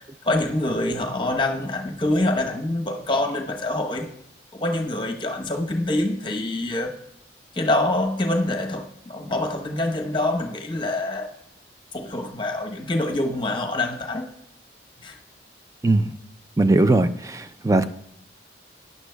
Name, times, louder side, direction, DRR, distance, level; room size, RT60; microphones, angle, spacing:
voice 1, 0.0-4.1 4.5-7.0 7.5-11.3 11.9-14.3 15.0-15.2, left 1 dB, 25° left, 0.9 m, -25 dB
voice 2, 16.6-17.9, right 2 dB, 15° right, 0.4 m, -19 dB
14.5 x 9.8 x 2.2 m
head